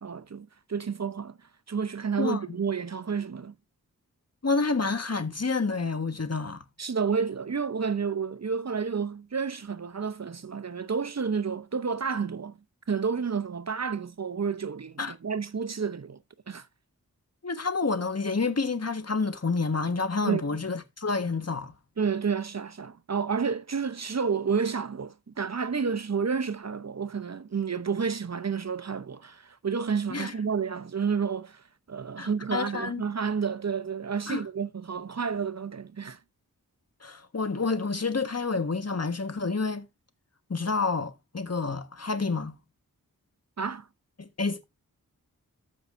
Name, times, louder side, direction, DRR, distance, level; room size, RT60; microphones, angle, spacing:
voice 1, 0.0-1.4 1.7-3.5 6.8-12.6 12.9-16.2 16.5-16.7 20.2-20.4 22.0-36.2 43.6-43.9, right 6 dB, 45° right, 0.7 m, -30 dB
voice 2, 4.4-6.6 15.0-15.1 17.4-21.7 30.1-30.3 32.2-33.0 34.3-34.4 37.0-39.9 40.5-42.6 44.2-44.6, left 4 dB, 45° left, 1.4 m, -29 dB
14.0 x 5.6 x 2.6 m
cardioid pair, 45°, 36 cm